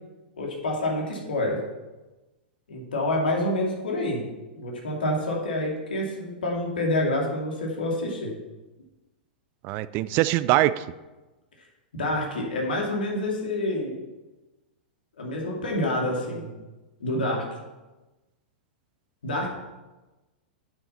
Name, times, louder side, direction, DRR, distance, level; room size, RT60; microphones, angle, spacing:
voice 1, 0.4-1.6 2.7-4.2 4.6-8.3 11.9-13.9 15.2-16.5 17.0-17.5 19.2-19.5, left 1 dB, 75° left, -1 dB, 2.7 m, -27 dB
voice 2, 9.6-10.8, right 15 dB, 40° right, 16 dB, 0.4 m, -22 dB
8.6 x 6.9 x 5.8 m, 1.1 s
figure-of-eight pair, 100°, 5 cm